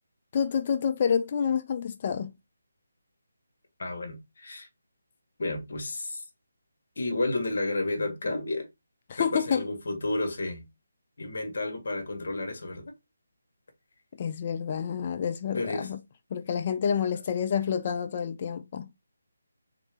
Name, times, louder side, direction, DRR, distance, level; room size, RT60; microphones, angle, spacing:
voice 1, 0.3-2.3 9.1-9.7 14.2-16.0 16.3-18.9, left 7 dB, 35° left, 0.3 m, -28 dB
voice 2, 3.8-4.7 5.4-6.2 7.0-8.7 9.1-10.7 11.2-12.9 15.5-15.9, left 2 dB, 60° left, 1.5 m, -31 dB
3.8 x 3.0 x 3.5 m
figure-of-eight pair, 165°, 0 cm